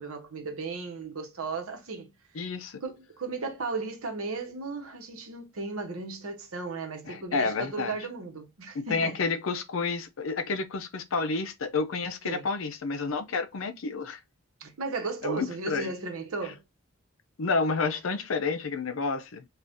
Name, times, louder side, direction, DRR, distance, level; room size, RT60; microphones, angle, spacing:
voice 1, 0.0-2.1 2.8-9.2 12.2-12.5 14.6-16.6, right 3 dB, 85° right, 1.0 m, -35 dB
voice 2, 2.3-2.8 7.0-8.0 8.7-14.2 15.2-15.9 17.4-19.5, left 4 dB, 65° left, 0.5 m, -30 dB
3.5 x 2.4 x 2.5 m
head